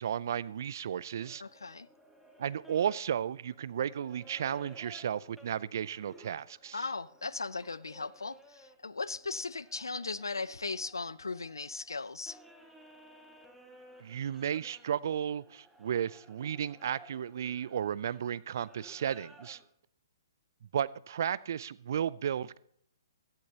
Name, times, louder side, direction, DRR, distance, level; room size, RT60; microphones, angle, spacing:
voice 1, 0.0-1.4 2.4-6.8 14.0-19.6 20.7-22.6, right 9 dB, 55° right, 0.5 m, -34 dB
sound 1, 1.2-8.8 9.1-19.7, right 1 dB, ahead, 1.8 m, -57 dB
voice 2, 1.4-1.9 6.7-12.4, left 4 dB, 80° left, 0.5 m, -38 dB
17.0 x 14.5 x 2.9 m
figure-of-eight pair, 125°, 2 cm